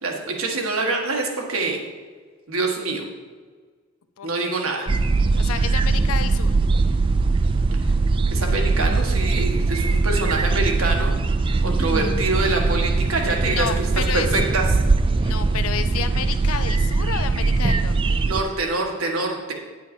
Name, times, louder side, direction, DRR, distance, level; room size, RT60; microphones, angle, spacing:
voice 1, 0.0-1.8 2.5-3.0 4.2-4.9 8.3-11.2 11.6-13.9 14.1-14.6 18.2-19.5, right 3 dB, 90° right, 1 dB, 1.5 m, -25 dB
voice 2, 4.2-4.7 5.2-6.5 11.8-11.9 13.4-14.3 15.2-18.2, left 7 dB, 90° left, 10 dB, 0.5 m, -31 dB
sound 1, 4.9-18.4, right 3 dB, 25° right, 0.3 m, -21 dB
9.9 x 7.4 x 4.3 m, 1.5 s
head